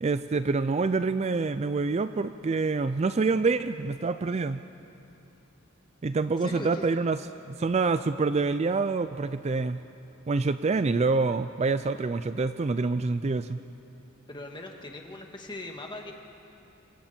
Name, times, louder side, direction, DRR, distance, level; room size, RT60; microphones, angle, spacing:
voice 1, 0.0-4.6 6.0-7.2 7.5-9.8 10.3-13.6, right 4 dB, 30° right, 12 dB, 0.4 m, -26 dB
voice 2, 6.4-6.9 14.3-16.1, left 2 dB, 20° left, 2 dB, 1.8 m, -40 dB
27.5 x 23.5 x 4.4 m, 2.8 s
head